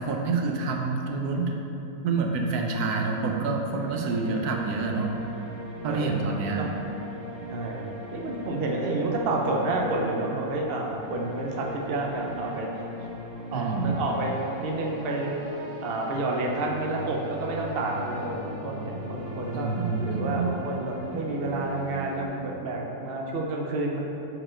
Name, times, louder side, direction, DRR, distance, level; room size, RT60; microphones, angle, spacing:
voice 1, 0.0-1.6 2.0-5.1 5.8-6.7 13.5-14.0 19.5-20.6, right 4 dB, 85° right, 2 dB, 1.2 m, -27 dB
sound 1, 3.7-22.3, equal, 25° right, 1.4 m, -39 dB
voice 2, 5.8-6.2 6.6-6.7 7.5-7.9 8.1-12.9 13.5-19.7 20.0-24.0, right 2 dB, 50° right, 0 dB, 0.8 m, -30 dB
6.7 x 4.5 x 4.4 m, 2.9 s
omnidirectional pair, 1.6 m